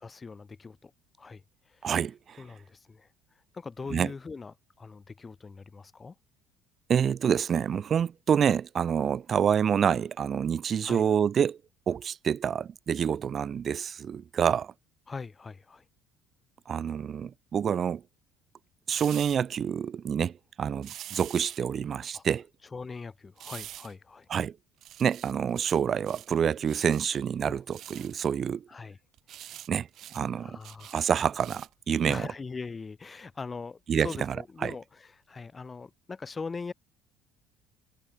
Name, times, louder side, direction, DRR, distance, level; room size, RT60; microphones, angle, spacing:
voice 1, 0.0-0.9 1.2-1.9 2.4-3.1 3.5-6.1 10.8-11.1 15.1-15.8 22.1-22.2 22.7-24.3 27.4-27.6 28.7-29.0 30.4-31.1 32.1-36.7, left 4 dB, 25° left, 5.0 m, -41 dB
voice 2, 1.8-2.4 3.9-4.1 6.9-11.6 11.9-14.7 16.7-18.0 18.9-22.5 24.3-24.5 25.0-28.6 29.7-29.9 30.1-30.6 30.9-32.3 33.9-34.4 34.6-34.7, right 8 dB, 45° right, 0.9 m, -27 dB
sound 1, 18.9-19.4 20.8-21.6 23.4-23.9 24.3-24.4 24.8-25.8 26.0-26.3 26.7-27.0 27.7-28.2 29.1-29.7 29.9-30.2 30.6-31.7 32.2-32.3, right 12 dB, 60° right, 7.6 m, -44 dB
supercardioid pair, 80°, 0 cm